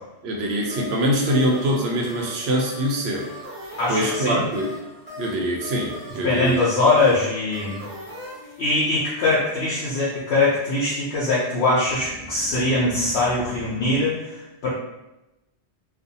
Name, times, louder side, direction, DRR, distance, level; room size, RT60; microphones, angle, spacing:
voice 1, 0.2-3.3 3.9-4.7 5.2-6.6, equal, 70° right, 0 dB, 0.8 m, -23 dB
sound 1, 0.6-10.5 11.7-14.0, left 1 dB, 10° right, 0.8 m, -40 dB
voice 2, 3.8-4.4 6.2-7.8 8.6-14.7, left 2 dB, 70° left, -7 dB, 0.8 m, -22 dB
2.4 x 2.2 x 2.6 m, 0.97 s
omnidirectional pair, 1.2 m